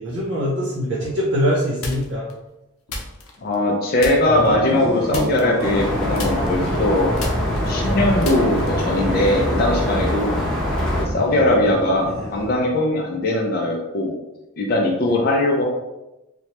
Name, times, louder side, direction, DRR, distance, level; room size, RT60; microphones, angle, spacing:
voice 1, 0.0-2.3 11.3-11.4 15.1-15.2, equal, 60° right, -8 dB, 0.6 m, -23 dB
sound 1, 1.8-2.3 2.9-3.7 4.0-4.5 5.1-5.9 6.2-8.9, left 2 dB, 90° left, 0.6 m, -33 dB
voice 2, 3.4-7.2 7.7-10.4 11.0-14.1 14.6-15.7, left 1 dB, 45° left, -1 dB, 0.4 m, -20 dB
sound 2, 4.2-12.8, equal, 90° right, 0.9 m, -29 dB
sound 3, 5.6-11.0, equal, 5° left, 0.7 m, -24 dB
2.9 x 2.2 x 2.8 m, 0.96 s
head